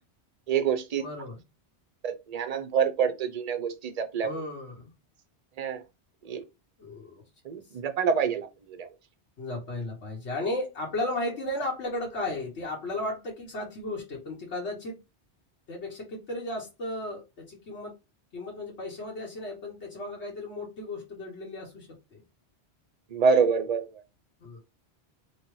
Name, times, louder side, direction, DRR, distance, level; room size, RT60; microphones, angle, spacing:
voice 1, 0.5-1.0 2.0-4.3 5.6-5.8 6.3-6.4 7.5-8.5 8.8-8.9 23.1-23.9, right 6 dB, 45° right, 0.5 m, -26 dB
voice 2, 1.0-1.4 4.2-4.9 6.8-7.2 9.4-15.0 15.7-17.9 18.3-22.2 24.4-24.6, left 1 dB, 80° left, 1.4 m, -35 dB
4.2 x 3.1 x 3.1 m
omnidirectional pair, 1.1 m